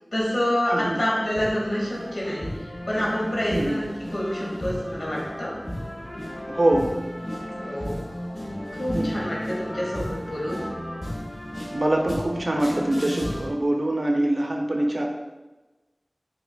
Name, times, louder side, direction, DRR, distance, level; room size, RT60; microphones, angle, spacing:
voice 1, 0.1-5.6 7.5-8.0 8.7-10.6, equal, 80° left, -5 dB, 1.0 m, -27 dB
sound 1, 0.8-13.5, equal, 55° left, 0.9 m, -34 dB
voice 2, 6.5-6.9 8.9-9.2 11.7-15.1, right 1 dB, 70° right, 1 dB, 0.4 m, -24 dB
5.3 x 2.3 x 2.2 m, 1.1 s
wide cardioid pair, 50°, 0 cm